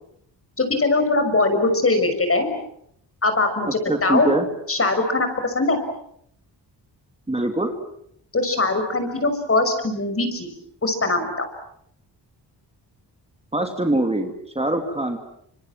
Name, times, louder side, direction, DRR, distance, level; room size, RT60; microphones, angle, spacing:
voice 1, 0.6-2.5 3.2-4.3 4.7-5.8 8.3-10.5 10.8-11.5, left 2 dB, 30° left, 7 dB, 6.2 m, -21 dB
voice 2, 3.9-4.5 7.3-7.7 13.5-15.2, right 2 dB, 15° right, 5 dB, 2.8 m, -23 dB
29.5 x 26.5 x 7.6 m, 0.71 s
wide cardioid pair, 110°, 42 cm